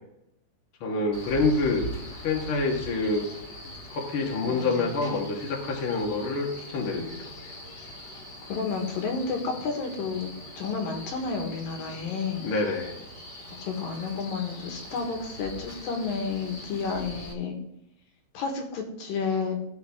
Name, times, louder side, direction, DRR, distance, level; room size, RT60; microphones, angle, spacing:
voice 1, 0.8-1.8 2.2-3.3 3.6-7.3 12.4-12.9, left 3 dB, 80° left, 0 dB, 1.2 m, -27 dB
Male speech man speaking, 1.1-17.3, equal, 35° left, 1.7 m, -42 dB
voice 2, 4.5-4.9 8.5-10.3 10.6-12.5 13.6-17.6 18.3-19.6, left 5 dB, 65° left, 3 dB, 2.6 m, -31 dB
16.0 x 6.1 x 3.6 m, 0.82 s
omnidirectional pair, 5.4 m